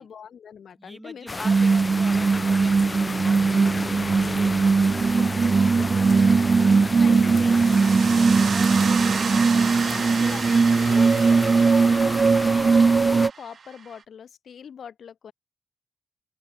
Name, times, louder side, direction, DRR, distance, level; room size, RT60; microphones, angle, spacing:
voice 1, 0.0-1.7 5.2-5.3 6.4-7.8 9.9-15.3, left 7 dB, 75° left, 7.5 m, -42 dB
voice 2, 0.7-5.5 6.5-6.9 8.0-10.4 10.8-11.6 11.9-12.1, right 1 dB, 10° right, 5.9 m, -44 dB
sound 1, 1.3-13.3, left 2 dB, 30° left, 0.5 m, -33 dB
sound 2, 1.4-13.3, right 4 dB, 50° right, 0.7 m, -19 dB
sound 3, 7.1-14.0, right 6 dB, 65° right, 2.0 m, -33 dB
open air
cardioid pair, 55°, 0 cm